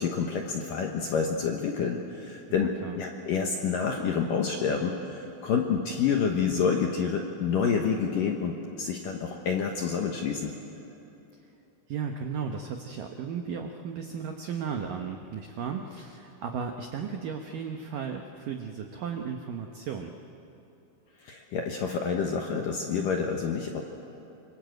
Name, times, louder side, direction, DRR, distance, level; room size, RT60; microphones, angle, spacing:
voice 1, 0.0-10.5 21.2-23.8, left 6 dB, 70° left, 2 dB, 2.1 m, -28 dB
voice 2, 2.6-3.0 11.9-20.1, right 6 dB, 80° right, 4 dB, 2.0 m, -35 dB
26.0 x 25.5 x 7.9 m, 3.0 s
omnidirectional pair, 5.5 m